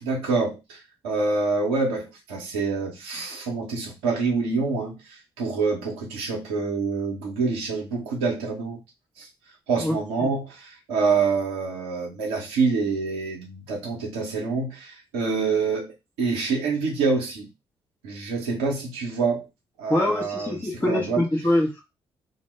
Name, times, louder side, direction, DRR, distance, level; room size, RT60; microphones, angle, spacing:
voice 1, 0.0-8.8 9.2-9.3 9.7-17.5 18.0-19.5 19.8-20.6 20.9-21.2, right 4 dB, 80° right, -2 dB, 0.8 m, -26 dB
voice 2, 9.8-10.3 19.9-21.8, left 1 dB, 15° left, -1 dB, 0.7 m, -24 dB
2.2 x 2.1 x 3.1 m, 0.23 s
figure-of-eight pair, 40°, 13 cm